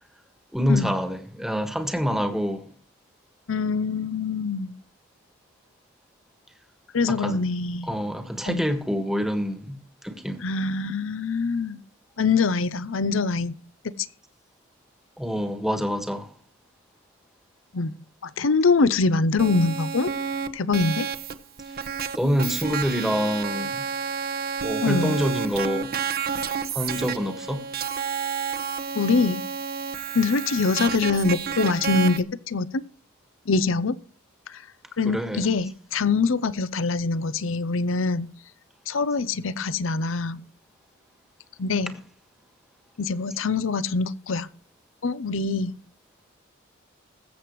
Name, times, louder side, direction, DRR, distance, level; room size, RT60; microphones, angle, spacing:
voice 1, 0.5-2.6 7.1-7.4 7.8-10.4 15.2-16.3 22.1-23.8 24.6-25.9 26.7-27.7 35.0-35.5, equal, ahead, 1.5 m, -26 dB
voice 2, 3.5-4.7 6.9-7.9 8.4-8.6 10.4-11.8 12.2-13.5 13.8-14.1 17.7-17.9 18.2-20.1 20.5-21.1 24.8-25.2 28.9-29.5 30.1-32.8 33.5-34.0 34.5-34.6 35.0-38.3 38.9-40.4 41.6-41.9 43.0-44.5 45.0-45.8, left 4 dB, 70° left, 0.7 m, -24 dB
sound 1, 19.4-32.2, right 6 dB, 50° right, 1.0 m, -30 dB
21.5 x 7.8 x 3.1 m
head